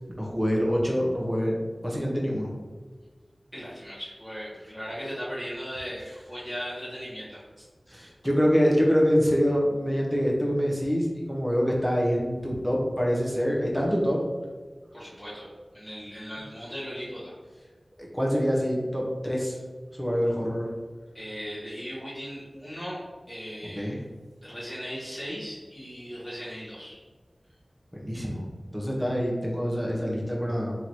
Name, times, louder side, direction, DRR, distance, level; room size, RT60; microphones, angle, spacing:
voice 1, 0.2-2.5 7.9-14.2 18.0-19.6 19.9-20.7 23.7-24.0 27.9-28.5 28.7-30.8, equal, 5° right, -3 dB, 0.9 m, -25 dB
voice 2, 3.5-7.4 14.9-15.5 15.7-17.3 21.1-23.9 24.4-27.0, equal, 15° left, -11 dB, 1.4 m, -37 dB
3.1 x 2.9 x 4.1 m, 1.4 s
wide cardioid pair, 65°, 0 cm